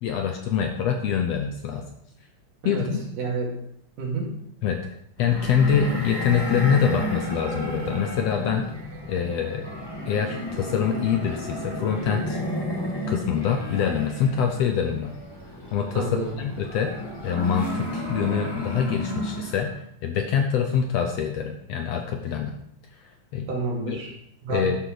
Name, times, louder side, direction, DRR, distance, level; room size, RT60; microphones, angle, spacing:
voice 1, 0.0-1.9 2.6-3.1 4.6-4.8 5.2-8.7 9.1-9.7 10.1-12.4 13.1-15.2 15.7-16.9 17.2-19.7 20.0-22.5 23.3-23.5 23.9-24.0 24.5-24.8, left 7 dB, 70° left, 4 dB, 1.6 m, -25 dB
voice 2, 3.2-3.5 4.0-4.3 16.0-16.3 23.5-24.1 24.4-24.7, right 3 dB, 90° right, -2 dB, 4.0 m, -29 dB
sound 1, 5.2-19.7, equal, 15° left, 0.8 m, -32 dB
11.5 x 6.3 x 4.9 m, 0.72 s
omnidirectional pair, 3.7 m